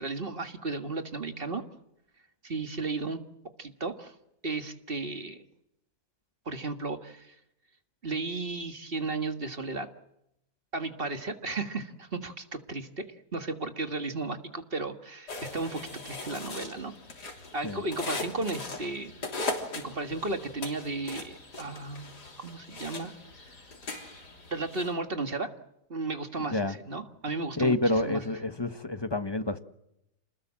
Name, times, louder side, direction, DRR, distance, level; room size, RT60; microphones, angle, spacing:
voice 1, 0.0-1.6 2.4-3.2 3.6-4.1 4.4-5.4 6.5-7.4 8.0-9.9 10.7-13.0 13.3-16.9 17.5-19.1 19.8-23.1 24.5-25.5 25.9-28.2, right 3 dB, 35° right, 1.8 m, -34 dB
sound 1, 15.3-24.9, left 2 dB, 85° left, 4.0 m, -39 dB
voice 2, 27.6-29.6, left 2 dB, 15° left, 1.1 m, -28 dB
28.0 x 20.5 x 7.5 m
omnidirectional pair, 1.7 m